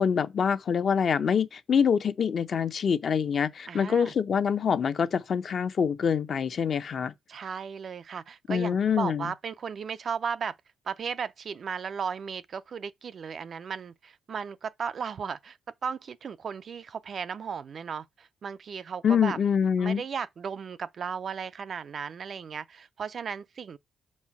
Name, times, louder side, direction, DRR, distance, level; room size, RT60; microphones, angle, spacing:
voice 1, 0.0-7.1 8.5-9.3 19.0-20.0, left 7 dB, 50° left, 0.7 m, -25 dB
voice 2, 3.7-4.1 7.3-10.6 10.9-15.6 15.8-19.4 19.8-23.8, right 6 dB, 50° right, 0.4 m, -35 dB
5.6 x 4.3 x 5.9 m
cardioid pair, 90°, 0 cm